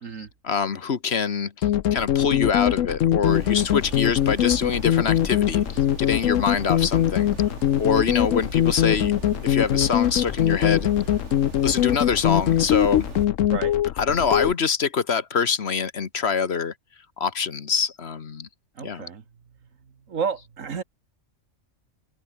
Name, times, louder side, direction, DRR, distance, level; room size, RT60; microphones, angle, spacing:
voice 1, 0.4-9.1 9.4-10.9 11.6-13.1 14.0-16.7 17.2-18.5 18.8-19.0, left 6 dB, 55° left, 1.4 m, -25 dB
sound 1, 1.6-14.5, left 11 dB, 80° left, 1.1 m, -22 dB
sound 2, 3.3-13.3, right 4 dB, 65° right, 2.9 m, -39 dB
voice 2, 18.8-19.2 20.1-20.8, right 6 dB, 85° right, 1.9 m, -31 dB
open air
omnidirectional pair, 1.3 m